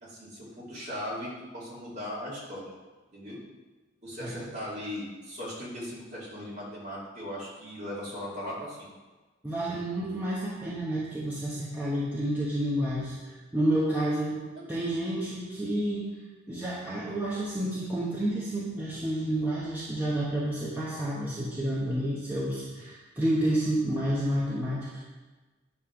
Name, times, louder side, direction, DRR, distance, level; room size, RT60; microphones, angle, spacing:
voice 1, 0.0-2.7 3.1-3.4 4.0-8.9 14.5-14.8, left 1 dB, 35° right, -7 dB, 2.6 m, -38 dB
voice 2, 9.4-14.4 14.7-16.1 16.5-24.9, right 1 dB, 10° right, -8 dB, 1.0 m, -30 dB
9.5 x 3.4 x 5.8 m, 1.2 s
head